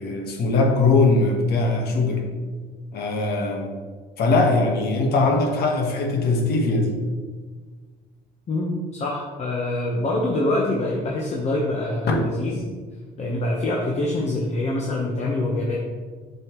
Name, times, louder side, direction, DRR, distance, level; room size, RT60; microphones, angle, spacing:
voice 1, 0.0-2.3 2.9-3.7 4.2-7.0 12.1-12.2, left 3 dB, 70° left, 2 dB, 1.3 m, -21 dB
voice 2, 8.5-12.6 13.2-15.8, left 2 dB, 40° left, -2 dB, 1.0 m, -25 dB
7.8 x 5.6 x 3.1 m, 1.5 s
cardioid pair, 110°, 17 cm